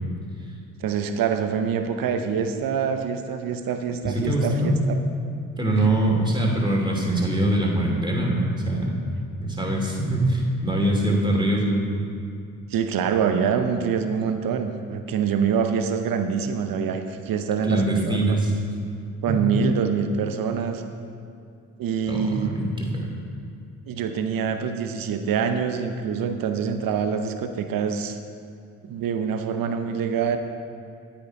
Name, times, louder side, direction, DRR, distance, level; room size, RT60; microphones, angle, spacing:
voice 1, 0.8-5.0 12.7-18.4 19.2-20.8 21.8-22.5 23.9-28.2 28.8-30.4, right 6 dB, 65° right, 7 dB, 0.9 m, -25 dB
voice 2, 4.0-4.8 5.6-9.0 9.4-11.8 17.6-18.5 19.3-19.4 22.1-23.1, right 1 dB, 10° right, -1 dB, 2.6 m, -23 dB
9.1 x 9.0 x 4.8 m, 2.4 s
hypercardioid pair, 40°, 37 cm